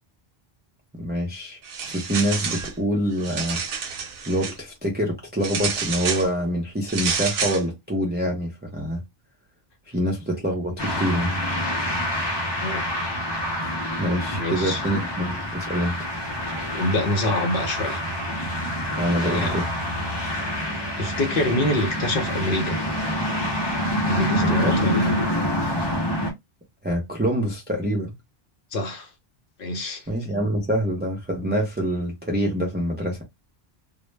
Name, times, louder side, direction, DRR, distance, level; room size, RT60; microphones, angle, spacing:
voice 1, 1.0-1.6 1.8-3.6 4.3-9.0 9.9-11.3 13.6-13.7 14.0-16.0 19.0-19.7 24.3-24.8 26.8-28.1 30.1-33.2, equal, 15° right, 0.4 m, -25 dB
sound 1, 1.6-2.7 3.1-4.6 5.4-6.3 6.9-7.6, right 6 dB, 65° right, 0.7 m, -29 dB
sound 2, 10.8-26.3, equal, 30° left, 0.6 m, -26 dB
voice 2, 14.3-14.8 16.7-18.0 19.1-19.5 21.0-22.8 24.0-25.1 28.7-29.1 29.6-30.1, left 1 dB, 65° left, 0.8 m, -26 dB
2.0 x 2.0 x 3.2 m
omnidirectional pair, 1.0 m